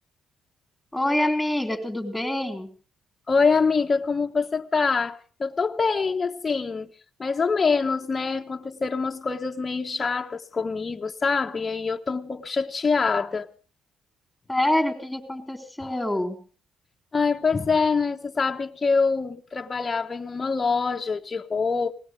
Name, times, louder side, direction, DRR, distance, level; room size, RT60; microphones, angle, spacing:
voice 1, 0.9-2.7 14.5-16.4, left 1 dB, 5° left, 3.6 m, -26 dB
voice 2, 3.3-6.9 7.2-13.5 15.8-15.9 17.1-21.9, left 4 dB, 30° left, 1.0 m, -25 dB
20.5 x 19.0 x 3.7 m
cardioid pair, 90°, 0 cm